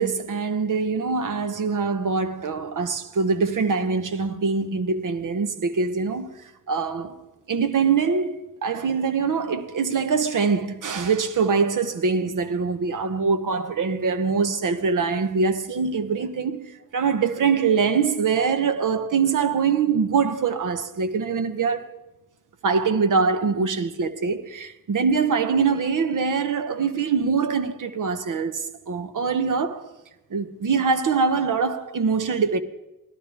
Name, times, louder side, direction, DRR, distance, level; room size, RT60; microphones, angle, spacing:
voice 1, 0.0-6.3 6.7-7.2 7.5-21.9 22.6-29.9 30.3-32.6, right 5 dB, 60° right, 1.1 m, -23 dB
17.5 x 12.5 x 3.5 m
cardioid pair, 70°, 35 cm